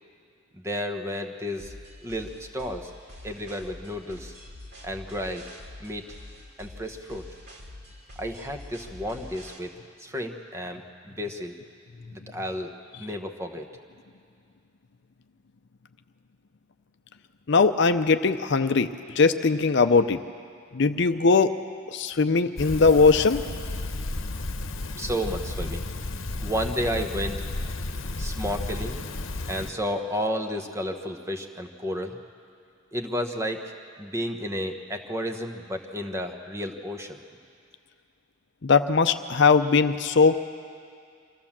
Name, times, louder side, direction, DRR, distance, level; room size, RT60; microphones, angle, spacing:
voice 1, 0.5-1.7 2.0-2.9 3.2-4.3 4.8-5.4 5.8-6.0 6.6-7.2 8.2-9.7 10.0-11.6 12.1-12.7 13.0-13.7 25.0-25.8 26.4-27.4 28.2-29.0 29.5-32.2 32.9-33.7 34.0-37.2, equal, 15° right, 5 dB, 1.1 m, -32 dB
sound 1, 1.6-9.6, left 1 dB, 55° right, 2.8 m, -45 dB
voice 2, 17.5-18.9 19.2-20.2 20.7-21.5 21.9-23.4 38.6-40.4, left 4 dB, 60° left, 10 dB, 0.6 m, -20 dB
sound 2, 22.6-29.7, left 2 dB, 85° left, 1.0 m, -33 dB
24.0 x 14.5 x 7.3 m, 2.3 s
head